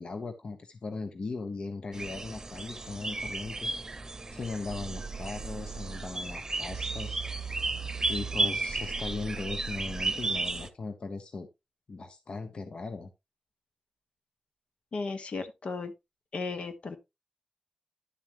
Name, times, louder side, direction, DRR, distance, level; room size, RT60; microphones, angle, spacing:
voice 1, 0.0-3.7 4.3-7.2 8.1-11.5 11.9-13.1, left 3 dB, 55° left, 1.1 m, -38 dB
sound 1, 1.9-10.7, right 2 dB, 30° right, 0.9 m, -34 dB
sound 2, 4.7-6.2 6.7-10.2, right 7 dB, 90° right, 0.4 m, -40 dB
voice 2, 14.9-15.9 16.3-17.0, left 4 dB, 75° left, 1.4 m, -35 dB
11.0 x 7.3 x 3.1 m
wide cardioid pair, 140°, 2 cm